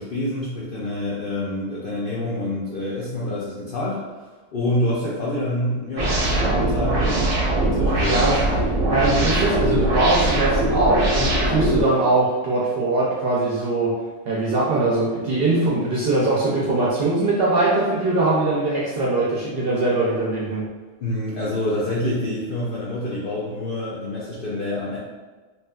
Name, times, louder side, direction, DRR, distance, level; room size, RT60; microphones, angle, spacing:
voice 1, 0.0-7.3 7.6-8.3 9.2-9.3 21.0-25.0, left 1 dB, 65° left, -7 dB, 0.5 m, -27 dB
sound 1, 6.0-11.8, right 1 dB, 90° right, 1.0 m, -21 dB
voice 2, 7.9-8.4 8.9-13.9 14.3-20.6, right 2 dB, 65° right, -6 dB, 0.6 m, -21 dB
2.8 x 2.3 x 2.2 m, 1.3 s
omnidirectional pair, 1.3 m